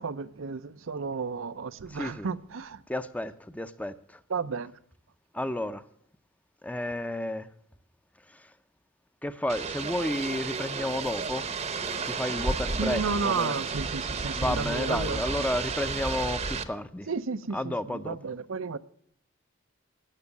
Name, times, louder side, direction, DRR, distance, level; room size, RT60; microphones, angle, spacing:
voice 1, 0.0-2.8 4.3-4.7 12.8-15.5 17.1-18.8, right 5 dB, 85° right, 0.6 m, -32 dB
voice 2, 1.9-2.3 2.9-4.2 5.3-5.8 6.6-7.5 8.3-8.5 9.2-11.5 12.0-13.5 14.3-17.1 17.5-18.2, left 1 dB, 5° left, 0.6 m, -32 dB
sound 1, 9.5-16.6, right 4 dB, 35° right, 0.8 m, -32 dB
16.5 x 6.4 x 7.1 m
head